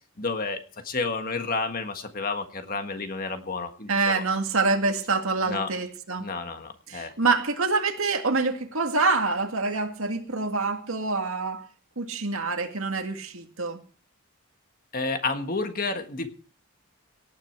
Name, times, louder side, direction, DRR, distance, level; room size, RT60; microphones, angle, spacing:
voice 1, 0.2-0.6 0.8-4.2 5.5-5.7 6.2-7.1 14.9-16.3, left 3 dB, 40° left, 7 dB, 1.6 m, -30 dB
voice 2, 3.9-6.3 6.9-11.6 12.0-13.8, right 3 dB, 70° right, 5 dB, 2.1 m, -26 dB
18.0 x 9.7 x 4.6 m, 0.39 s
head